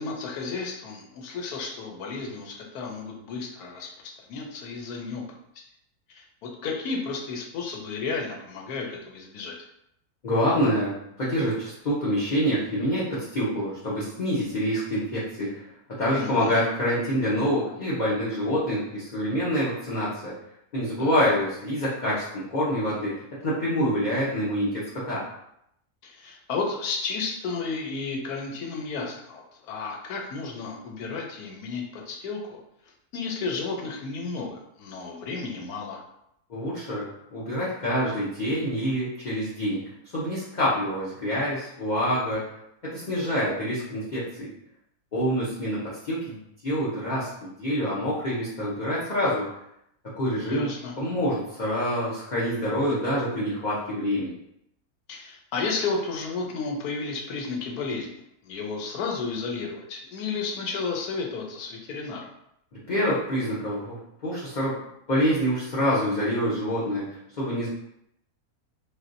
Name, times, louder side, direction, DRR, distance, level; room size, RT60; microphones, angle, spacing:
voice 1, 0.0-5.2 6.1-9.5 16.2-16.6 21.0-21.3 26.0-32.6 33.1-36.0 50.4-50.9 55.1-62.3, left 4 dB, 80° left, 0 dB, 1.2 m, -33 dB
voice 2, 10.2-15.6 15.9-20.3 20.7-25.2 36.5-42.5 42.8-44.5 45.1-49.5 50.1-54.4 62.7-67.7, equal, 50° left, -8 dB, 0.5 m, -26 dB
3.3 x 2.5 x 2.5 m, 0.78 s
omnidirectional pair, 1.6 m